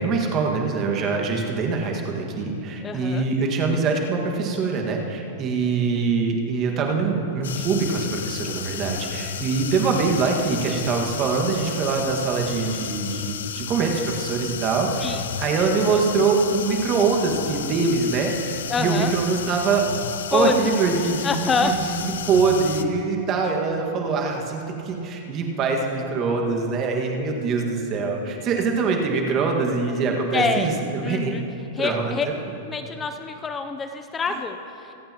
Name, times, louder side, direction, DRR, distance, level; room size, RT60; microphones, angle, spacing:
voice 1, 0.0-19.9 20.3-22.0 22.3-31.3 31.8-32.1, right 4 dB, 35° right, 1 dB, 1.7 m, -23 dB
voice 2, 2.8-3.2 15.0-15.3 18.7-19.1 20.3-20.6 21.2-21.7 30.3-30.7 31.0-31.4 31.7-32.3 32.7-34.9, left 4 dB, 20° left, 7 dB, 0.5 m, -25 dB
sound 1, 7.4-22.8, left 8 dB, 85° left, 0.6 m, -33 dB
25.0 x 8.5 x 3.0 m, 2.8 s
hypercardioid pair, 125°, 0 cm